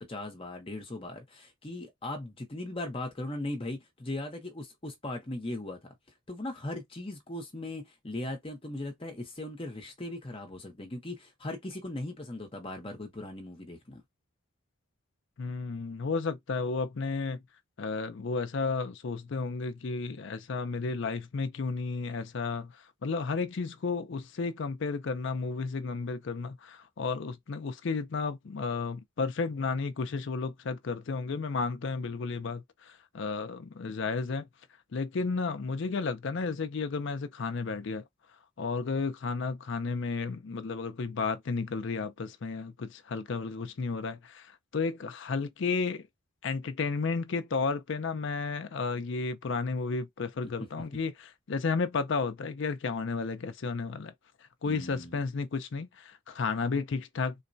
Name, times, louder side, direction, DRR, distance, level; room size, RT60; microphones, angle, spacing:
voice 1, 0.0-6.0 6.3-14.0 54.6-55.2, left 1 dB, 25° left, 0.8 m, -38 dB
voice 2, 15.4-17.4 17.8-34.5 34.9-38.0 38.6-46.1 46.4-54.1 54.6-57.3, left 4 dB, 60° left, 0.5 m, -32 dB
3.9 x 2.2 x 2.6 m
head